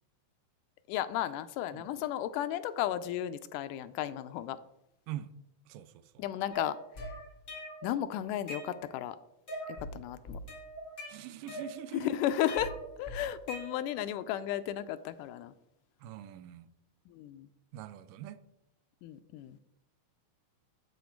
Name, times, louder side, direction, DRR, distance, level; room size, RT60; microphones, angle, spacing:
voice 1, 0.9-4.6 6.2-7.2 7.8-9.2 9.9-10.4 11.9-12.7 13.0-15.5 17.1-17.5 19.0-19.6, left 11 dB, 85° left, 12 dB, 2.1 m, -34 dB
voice 2, 5.7-6.2 11.1-12.1 16.0-16.7 17.7-18.4, right 11 dB, 90° right, 14 dB, 2.2 m, -44 dB
sound 1, 6.5-7.9 8.3-9.1 9.5-9.9 10.3-12.0 12.5-14.1, equal, 25° left, 3.7 m, -42 dB
9.5 x 8.1 x 4.5 m, 0.83 s
omnidirectional pair, 3.7 m